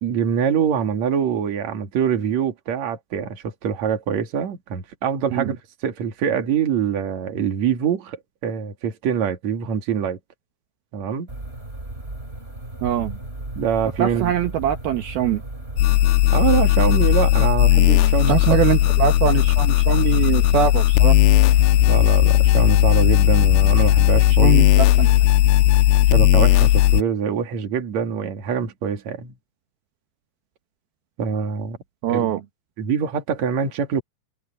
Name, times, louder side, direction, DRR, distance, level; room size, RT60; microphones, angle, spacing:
voice 1, 0.0-10.2 10.9-11.3 13.5-14.3 16.3-18.6 21.9-24.6 26.1-29.3 31.2-31.8 32.1-32.3 32.8-34.0, right 8 dB, 50° right, 3.1 m, -24 dB
sound 1, 11.3-24.2, right 2 dB, 15° right, 3.8 m, -35 dB
voice 2, 12.8-13.2 14.0-15.4 18.3-21.2 24.3-25.1 32.0-32.4, right 10 dB, 70° right, 3.0 m, -22 dB
sound 2, 15.8-27.0, left 15 dB, 85° left, 2.6 m, -16 dB
omnidirectional pair, 4.8 m